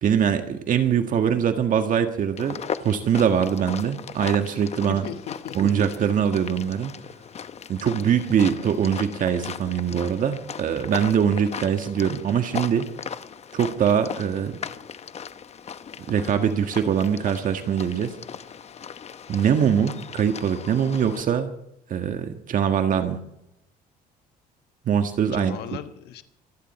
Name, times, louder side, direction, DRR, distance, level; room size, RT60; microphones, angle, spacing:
voice 1, 0.0-5.0 5.5-6.9 7.7-12.9 13.5-14.6 16.1-18.1 19.3-21.5 21.9-23.2 24.8-25.6, right 8 dB, 50° right, 6 dB, 1.7 m, -23 dB
sound 1, 2.4-21.2, left 7 dB, 40° left, 0.9 m, -38 dB
voice 2, 4.9-5.7 25.3-26.2, left 10 dB, 80° left, 9 dB, 1.2 m, -36 dB
26.5 x 10.0 x 4.3 m, 0.80 s
cardioid pair, 110°, 17 cm